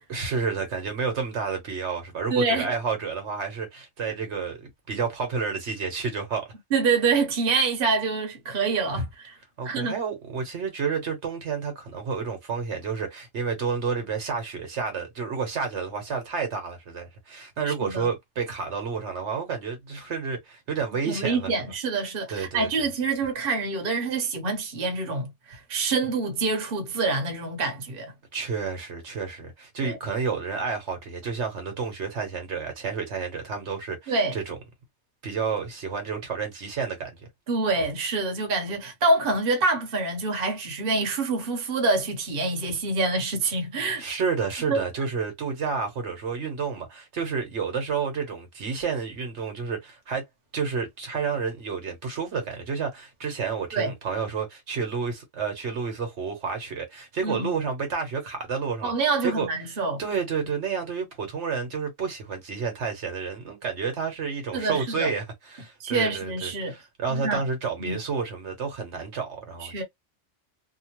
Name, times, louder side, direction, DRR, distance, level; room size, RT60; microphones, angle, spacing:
voice 1, 0.1-6.5 8.9-9.1 9.6-21.5 22.3-22.9 28.3-34.6 35.2-37.1 44.0-50.2 50.5-59.5 60.0-69.8, right 5 dB, 70° right, 1.3 m, -30 dB
voice 2, 2.3-2.7 6.7-9.4 9.6-10.0 17.7-18.1 21.1-28.1 29.8-30.0 34.1-34.4 37.5-44.0 44.7-44.8 53.7-53.9 57.2-57.5 58.8-60.0 64.5-65.1 65.8-66.7 67.1-67.4 67.8-68.0 69.6-69.8, right 3 dB, 55° right, 1.0 m, -26 dB
2.8 x 2.1 x 2.9 m
omnidirectional pair, 1.2 m